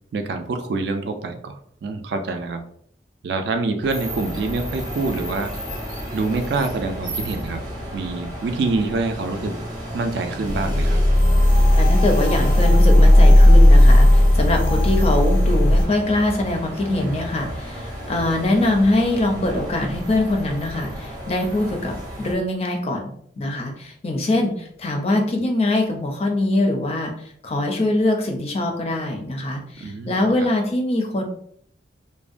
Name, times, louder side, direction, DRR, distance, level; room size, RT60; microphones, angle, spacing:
voice 1, 0.1-2.6 3.2-5.5 6.1-7.6 7.9-9.6 9.9-11.0 29.8-30.5, right 3 dB, 65° right, 6 dB, 0.3 m, -26 dB
sound 1, 3.8-22.3, equal, 20° right, 0.7 m, -33 dB
sound 2, 10.5-15.8, left 1 dB, 85° left, 0.5 m, -14 dB
voice 2, 11.7-31.2, left 1 dB, 35° left, 2 dB, 0.4 m, -23 dB
2.6 x 2.1 x 2.4 m, 0.65 s
head